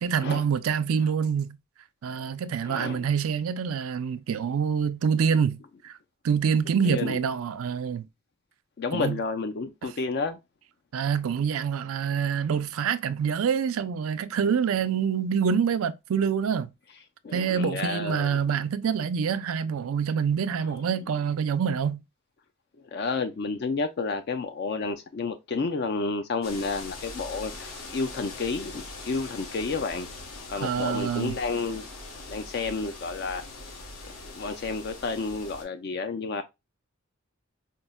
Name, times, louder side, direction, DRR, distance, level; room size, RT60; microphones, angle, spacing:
voice 1, 0.0-1.6 2.0-6.0 6.2-8.1 8.9-9.2 9.8-9.9 10.9-16.7 17.3-22.0 30.6-31.4, right 7 dB, 80° right, 0.4 m, -26 dB
voice 2, 2.6-3.0 6.8-7.2 8.8-10.4 17.2-18.4 22.9-30.1 30.5-31.9 32.3-33.4 34.4-36.4, left 4 dB, 50° left, 0.3 m, -30 dB
sound 1, 26.4-35.6, left 3 dB, 85° left, 1.1 m, -41 dB
5.2 x 2.0 x 2.2 m
head